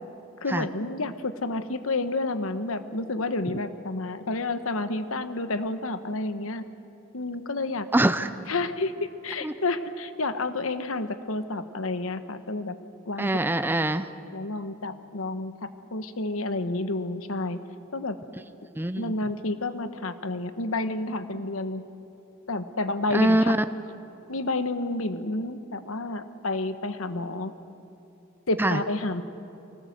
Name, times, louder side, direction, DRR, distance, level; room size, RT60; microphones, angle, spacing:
voice 1, 0.4-6.6 7.1-7.9 8.5-12.7 13.0-13.3 14.3-17.6 17.9-18.1 19.0-21.8 22.5-23.5 24.3-27.5 28.5-29.2, left 2 dB, 70° left, 11 dB, 1.2 m, -30 dB
voice 2, 7.9-8.3 9.4-9.5 13.2-14.1 18.8-19.1 23.1-23.6 28.6-28.8, right 1 dB, 10° right, 11 dB, 0.6 m, -23 dB
24.5 x 18.5 x 8.0 m, 2.7 s
head